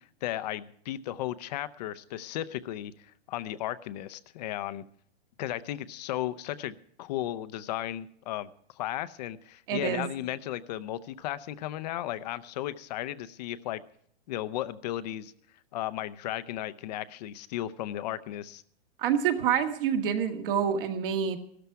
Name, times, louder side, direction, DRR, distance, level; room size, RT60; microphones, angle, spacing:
voice 1, 0.2-2.9 3.3-4.8 5.4-8.5 8.8-13.8 14.3-15.3 15.7-18.6, left 13 dB, 40° left, 15 dB, 0.6 m, -35 dB
voice 2, 9.7-10.0 19.0-21.4, right 8 dB, 55° right, 6 dB, 1.8 m, -27 dB
15.0 x 13.0 x 4.6 m, 0.65 s
hypercardioid pair, 155°, 33 cm